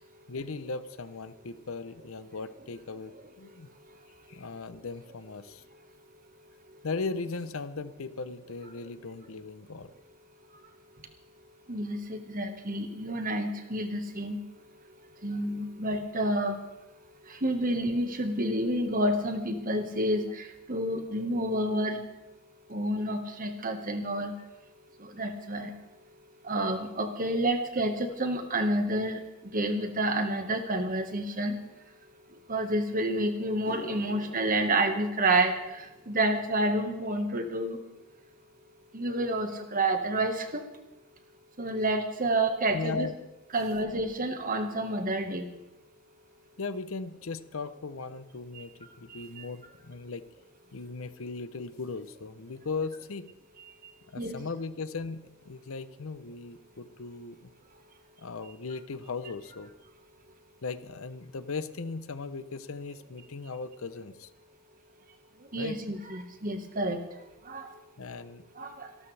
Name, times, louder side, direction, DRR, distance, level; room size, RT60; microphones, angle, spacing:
voice 1, 0.3-3.7 4.3-5.6 6.8-9.9 24.4-24.5 42.7-43.2 46.6-50.2 50.7-53.3 54.1-57.4 58.2-59.7 60.6-64.3 65.6-65.8 68.0-68.4, left 4 dB, 70° left, 13 dB, 0.8 m, -38 dB
voice 2, 11.7-14.4 15.2-16.6 17.4-22.0 22.7-24.3 25.2-25.7 26.4-29.2 29.5-31.5 32.5-35.5 36.1-37.8 38.9-40.6 41.6-43.1 43.5-45.5 54.2-54.4 65.5-67.0 67.5-67.7 68.6-68.9, right 1 dB, 40° right, 6 dB, 1.6 m, -29 dB
sound 1, 33.5-42.0 42.3-42.7 46.3-46.4 48.0-48.1 48.4-48.6 48.8-49.4, equal, 5° left, 5.7 m, -52 dB
25.5 x 12.5 x 3.4 m, 0.98 s
head